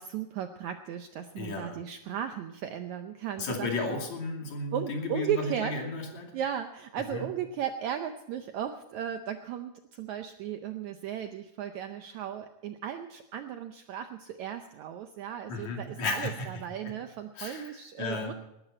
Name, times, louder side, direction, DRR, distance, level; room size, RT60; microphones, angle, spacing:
voice 1, 0.0-3.9 4.7-5.8 6.3-18.3, right 9 dB, 80° right, 7 dB, 1.6 m, -36 dB
voice 2, 1.4-1.8 3.4-6.4 7.1-7.3 15.5-16.5 16.8-16.9 17.4-17.7 18.0-18.3, left 3 dB, 50° left, 2 dB, 3.7 m, -34 dB
19.0 x 13.5 x 4.3 m, 0.90 s
omnidirectional pair, 4.2 m